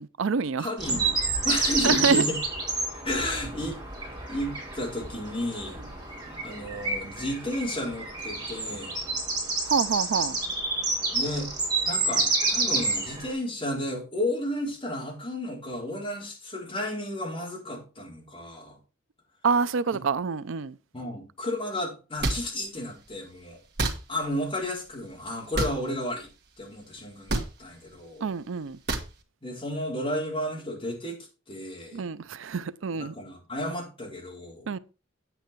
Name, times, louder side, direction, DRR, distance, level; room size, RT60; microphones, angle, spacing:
voice 1, 0.0-1.0 1.8-2.2 9.6-10.4 19.4-20.7 28.2-28.8 31.9-33.1 34.7-34.8, right 5 dB, 70° right, 0.5 m, -27 dB
voice 2, 0.6-2.4 3.0-3.8 4.3-5.9 6.3-9.0 11.1-11.5 11.9-18.8 20.9-23.6 24.1-26.3 26.6-28.3 29.4-31.2 31.5-32.0 32.9-34.8, left 1 dB, 25° left, 4.8 m, -32 dB
sound 1, 0.8-13.3, right 3 dB, 20° right, 5.9 m, -29 dB
sound 2, 22.2-22.4 23.8-24.0 25.5-25.8 27.3-27.5 28.9-29.1, right 2 dB, 50° right, 1.8 m, -26 dB
9.4 x 9.0 x 4.6 m
head